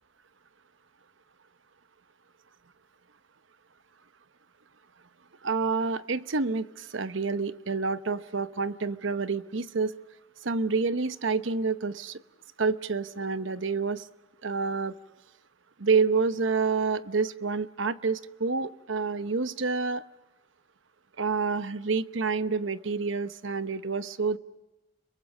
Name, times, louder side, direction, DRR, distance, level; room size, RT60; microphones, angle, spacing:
voice 1, 5.4-9.9 10.4-12.2 12.6-14.1 14.4-14.9 15.8-20.0 21.2-24.4, right 4 dB, 75° right, 13 dB, 0.9 m, -28 dB
30.0 x 22.5 x 6.5 m, 1.1 s
head